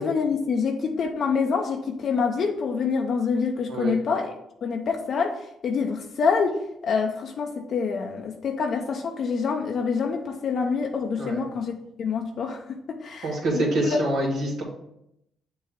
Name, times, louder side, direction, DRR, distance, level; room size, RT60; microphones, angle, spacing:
voice 1, 0.0-4.3 4.6-14.0, left 5 dB, 60° left, 3 dB, 0.6 m, -26 dB
voice 2, 3.7-4.0 11.2-11.4 13.2-14.6, right 1 dB, 75° right, -4 dB, 1.9 m, -26 dB
6.7 x 2.8 x 5.1 m, 0.81 s
cardioid pair, 90°, 0 cm